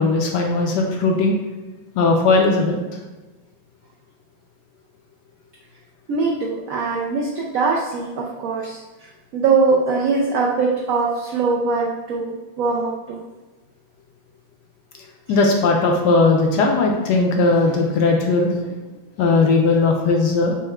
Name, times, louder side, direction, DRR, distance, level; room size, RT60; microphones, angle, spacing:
voice 1, 0.0-1.4 2.0-2.8 15.3-18.5 19.2-20.5, left 3 dB, 75° left, 1 dB, 1.1 m, -18 dB
voice 2, 6.1-13.2 15.3-15.4, right 4 dB, 85° right, -2 dB, 0.7 m, -22 dB
4.3 x 2.1 x 4.6 m, 1.2 s
omnidirectional pair, 2.1 m